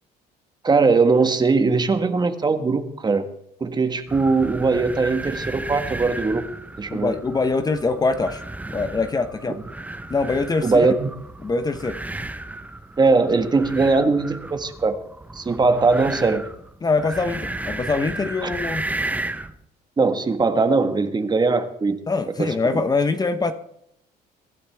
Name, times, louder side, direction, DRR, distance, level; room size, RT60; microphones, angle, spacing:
voice 1, 0.6-3.2 3.6-6.4 6.8-7.1 10.6-11.1 13.0-14.9 15.3-16.5 18.4-18.5 20.0-22.0 22.4-22.5, right 4 dB, 25° right, 8 dB, 1.4 m, -20 dB
sound 1, 4.1-19.6, right 2 dB, 10° right, 0.9 m, -34 dB
voice 2, 6.9-8.4 8.7-9.6 10.1-10.9 11.4-12.0 16.8-18.8 22.1-23.5, left 3 dB, 20° left, 9 dB, 1.0 m, -23 dB
23.0 x 11.5 x 3.5 m, 0.74 s
cardioid pair, 110°, 17 cm